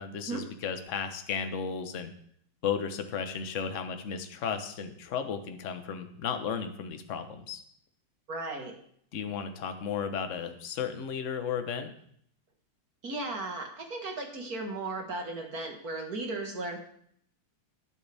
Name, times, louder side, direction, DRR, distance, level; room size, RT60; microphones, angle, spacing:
voice 1, 0.0-2.1 2.6-7.6 9.1-11.9, left 7 dB, 45° left, 8 dB, 1.1 m, -34 dB
voice 2, 8.3-8.7 13.0-16.8, right 2 dB, 45° right, 2 dB, 2.0 m, -36 dB
19.0 x 8.3 x 3.5 m, 0.65 s
omnidirectional pair, 2.4 m